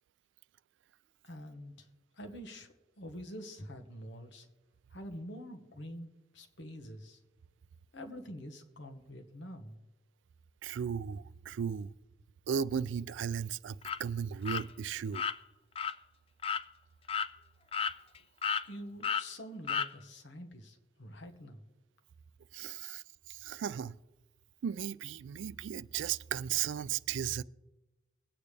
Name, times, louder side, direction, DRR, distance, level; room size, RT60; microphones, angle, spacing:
voice 1, 1.2-1.9 2.2-4.5 4.9-7.2 7.9-9.8 18.6-21.6, equal, 80° left, 1.4 m, -46 dB
voice 2, 10.6-11.9 12.5-15.3 22.5-24.0 24.6-27.4, right 8 dB, 90° right, 0.3 m, -36 dB
sound 1, 13.8-14.0 14.5-14.6 15.1-15.4 15.8-15.9 16.4-16.6 17.1-17.3 17.7-18.2 18.4-18.7 19.0-19.3 19.7-19.9, left 6 dB, 30° left, 0.3 m, -32 dB
21.5 x 8.9 x 3.3 m
head